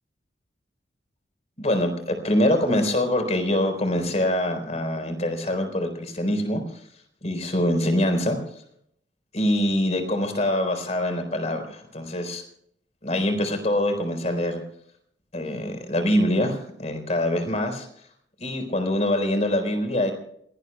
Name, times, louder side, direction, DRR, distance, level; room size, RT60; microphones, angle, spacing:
voice 1, 1.6-6.6 7.2-8.4 9.3-12.4 13.0-14.6 15.3-17.9 18.4-20.1, left 1 dB, 40° left, 6 dB, 4.2 m, -24 dB
27.5 x 19.0 x 2.2 m, 0.69 s
head